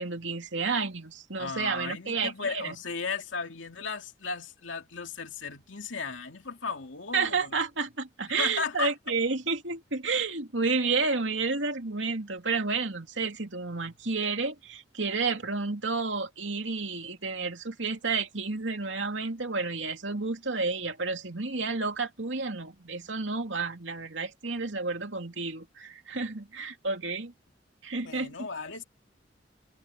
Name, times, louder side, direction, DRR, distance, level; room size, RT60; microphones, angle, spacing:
voice 1, 0.0-2.7 7.1-27.3 27.8-28.5, right 4 dB, 80° right, 2.8 m, -31 dB
voice 2, 1.4-7.5 8.4-8.9 28.0-28.8, left 5 dB, 90° left, 2.6 m, -35 dB
head